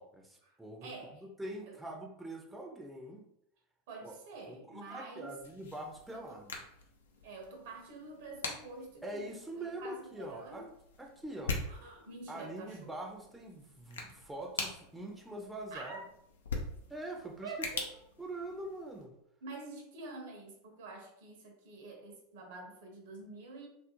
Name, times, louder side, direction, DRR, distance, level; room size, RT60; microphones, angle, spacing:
voice 1, 0.0-0.9 1.2-3.2 4.0-4.1 4.5-6.6 9.0-10.6 11.0-11.6 12.3-16.0 16.9-17.5 18.2-19.1, right 1 dB, 5° right, 0 dB, 0.5 m, -44 dB
voice 2, 0.8-1.2 1.7-1.8 3.9-5.4 6.1-6.4 7.2-9.3 9.5-10.7 11.6-12.9 15.7-16.0 17.4-17.8 19.4-23.7, right 3 dB, 65° right, 2 dB, 0.6 m, -47 dB
sound 1, 5.4-19.0, left 3 dB, 80° left, 0.4 m, -44 dB
2.4 x 2.0 x 2.9 m, 0.75 s
hypercardioid pair, 85°, 0 cm